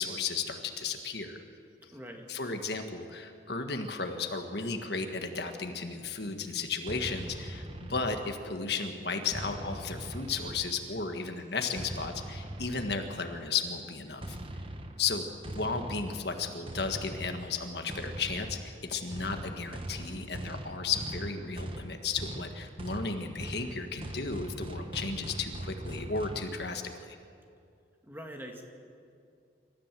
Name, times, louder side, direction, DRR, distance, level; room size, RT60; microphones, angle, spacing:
voice 1, 0.0-1.4 2.3-14.4 15.0-26.8, left 4 dB, 60° left, 5 dB, 1.6 m, -34 dB
voice 2, 1.9-2.3 28.0-28.6, equal, 10° right, 2 dB, 1.9 m, -43 dB
sound 1, 6.9-8.6 9.3-11.0 11.8-13.4 14.2-26.5, right 1 dB, 30° right, 1.1 m, -41 dB
26.5 x 14.0 x 7.5 m, 2.5 s
head